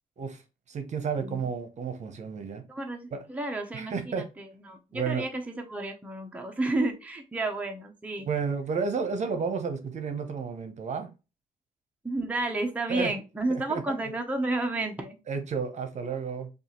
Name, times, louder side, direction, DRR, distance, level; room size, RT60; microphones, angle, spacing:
voice 1, 0.7-2.6 3.1-3.2 3.7-4.2 4.9-5.2 8.3-11.1 12.9-13.1 13.5-14.0 15.3-16.5, right 5 dB, 50° right, 0.9 m, -31 dB
voice 2, 2.7-5.4 5.7-8.3 12.0-15.2, right 2 dB, 10° right, 0.7 m, -31 dB
5.3 x 2.5 x 3.0 m
cardioid pair, 125°, 16 cm